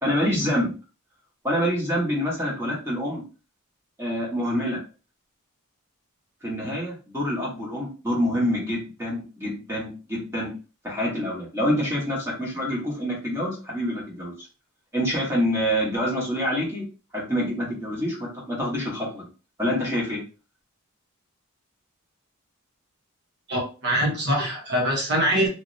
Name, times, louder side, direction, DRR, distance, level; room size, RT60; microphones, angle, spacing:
voice 1, 0.0-0.7 1.4-3.2 4.0-4.8 6.4-10.5 10.8-14.3 14.9-16.8 17.1-19.3 19.6-20.2, equal, 10° right, -4 dB, 1.2 m, -26 dB
voice 2, 23.5-25.5, equal, 50° right, -1 dB, 0.9 m, -23 dB
3.0 x 2.8 x 2.6 m, 0.33 s
head